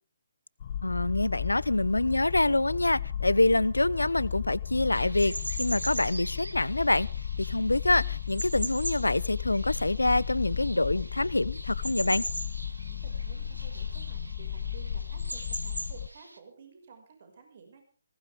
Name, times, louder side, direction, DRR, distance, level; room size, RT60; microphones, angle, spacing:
sound 1, 0.6-16.1, left 9 dB, 40° left, 0.8 m, -35 dB
voice 1, 0.8-12.2, left 2 dB, 85° left, 0.8 m, -26 dB
sound 2, 4.9-16.4, right 1 dB, 90° right, 2.6 m, -41 dB
voice 2, 12.8-17.8, right 5 dB, 45° right, 5.9 m, -53 dB
20.5 x 19.0 x 3.6 m
figure-of-eight pair, 140°, 0 cm